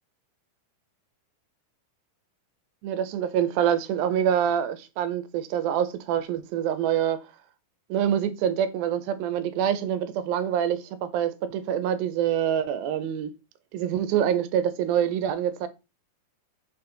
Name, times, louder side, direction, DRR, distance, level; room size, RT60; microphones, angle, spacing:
voice 1, 2.8-7.2 7.9-13.3 13.7-15.7, right 9 dB, 85° right, 2.5 m, -26 dB
5.7 x 4.4 x 3.8 m
omnidirectional pair, 4.1 m